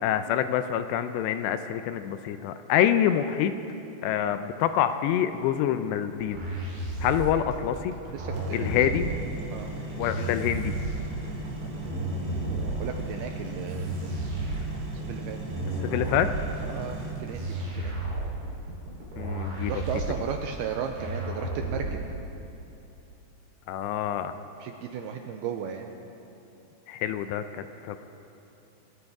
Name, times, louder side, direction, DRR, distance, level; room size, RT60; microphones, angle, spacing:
voice 1, 0.0-3.5 4.0-6.4 7.0-7.9 8.5-9.1 10.0-10.7 15.8-16.3 19.2-19.7 23.7-24.3 26.9-28.0, left 10 dB, 80° left, 10 dB, 2.6 m, -26 dB
sound 1, 6.2-22.2, right 2 dB, 70° right, 5.7 m, -33 dB
voice 2, 8.1-9.2 9.5-9.7 12.8-14.2 14.9-15.4 16.6-18.0 19.7-22.0 24.6-25.9, right 7 dB, 85° right, 4 dB, 2.3 m, -35 dB
sound 2, 8.3-17.1, right 1 dB, 45° right, 1.7 m, -37 dB
28.0 x 13.5 x 3.6 m, 3.0 s
omnidirectional pair, 5.1 m